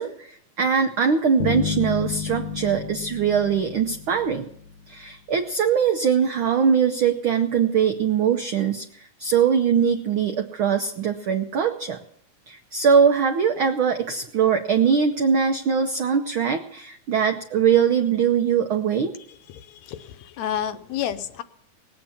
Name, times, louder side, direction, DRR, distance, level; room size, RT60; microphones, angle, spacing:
voice 1, 0.0-4.5 4.9-12.0 12.5-19.1, right 7 dB, 80° right, 5 dB, 1.1 m, -22 dB
sound 1, 1.4-4.8, left 5 dB, 55° left, 1.4 m, -31 dB
voice 2, 19.5-21.4, left 10 dB, 75° left, 11 dB, 1.9 m, -30 dB
19.0 x 8.8 x 7.2 m, 0.69 s
omnidirectional pair, 3.4 m